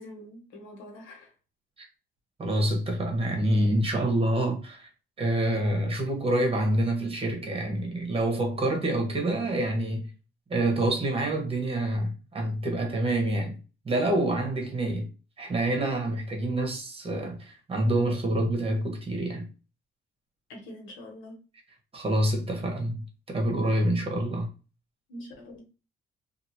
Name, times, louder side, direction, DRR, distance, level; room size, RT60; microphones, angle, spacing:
voice 1, 0.0-1.3 20.5-21.4 25.1-25.7, left 1 dB, 90° left, 1.2 m, -44 dB
voice 2, 2.4-4.9 5.2-10.1 10.5-13.6 13.8-15.1 15.4-19.4 21.9-24.5, right 1 dB, 30° right, 1.3 m, -27 dB
2.8 x 2.6 x 2.8 m
cardioid pair, 90°, 20 cm